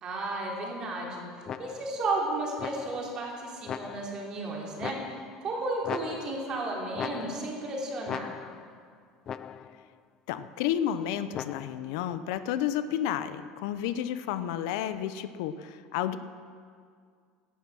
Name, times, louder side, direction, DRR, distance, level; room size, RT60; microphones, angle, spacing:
voice 1, 0.0-1.2 1.6-5.0 5.4-8.3, right 2 dB, 30° right, -2 dB, 3.2 m, -33 dB
sound 1, 1.5-2.0 2.6-3.2 3.7-4.3 4.8-5.5 5.8-6.6 6.9-7.7 8.1-8.8 9.3-9.8 11.3-11.9, left 8 dB, 25° left, 0.3 m, -39 dB
voice 2, 10.3-16.2, left 10 dB, 70° left, 12 dB, 0.7 m, -31 dB
17.0 x 11.5 x 6.2 m, 2.2 s
cardioid pair, 165°, 2 cm